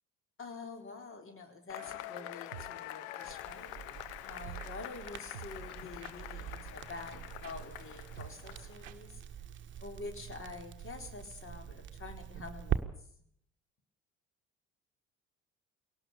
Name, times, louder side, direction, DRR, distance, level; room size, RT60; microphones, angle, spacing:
voice 1, 0.4-9.2 9.8-12.9, left 3 dB, 35° left, 5 dB, 4.2 m, -47 dB
Cheering / Applause / Crowd, 1.7-8.9, left 14 dB, 60° left, 1.0 m, -46 dB
sound 1, 1.8-1.9 2.5-2.7 3.2-3.3 4.5-4.7 5.3-6.4 6.8-6.9 7.1-7.2 7.4-7.6 7.8-7.9 8.2-8.6 8.8-9.0 9.2-9.3 9.6-9.7, right 10 dB, 80° right, 0.9 m, -49 dB
Crackle, 3.2-12.8, right 9 dB, 30° right, 1.3 m, -43 dB
21.5 x 18.0 x 6.8 m, 0.67 s
figure-of-eight pair, 55°, 37 cm